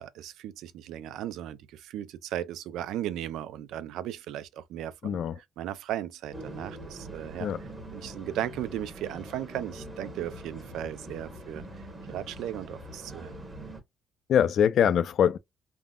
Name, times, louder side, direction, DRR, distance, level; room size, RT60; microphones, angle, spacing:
voice 1, 0.0-7.5 7.9-11.6 12.1-13.3, right 11 dB, 85° right, 0.3 m, -36 dB
voice 2, 5.0-5.4 7.4-7.6 14.3-15.4, left 9 dB, 55° left, 0.3 m, -23 dB
sound 1, 6.3-13.8, right 1 dB, 15° right, 0.9 m, -43 dB
3.5 x 2.0 x 2.2 m
cardioid pair, 145°, 0 cm